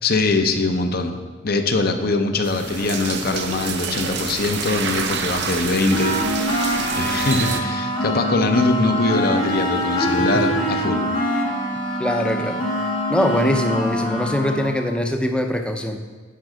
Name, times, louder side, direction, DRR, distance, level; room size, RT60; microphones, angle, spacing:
voice 1, 0.0-1.2 1.4-6.5 6.9-11.0, left 3 dB, 45° left, 6 dB, 0.7 m, -22 dB
sound 1, 2.4-7.6, right 6 dB, 55° right, 0.7 m, -28 dB
sound 2, 5.9-14.7, equal, 75° left, 1.7 m, -24 dB
voice 2, 12.0-12.6 13.1-16.0, left 1 dB, 5° left, 4 dB, 0.6 m, -22 dB
10.5 x 5.4 x 4.9 m, 1.4 s
head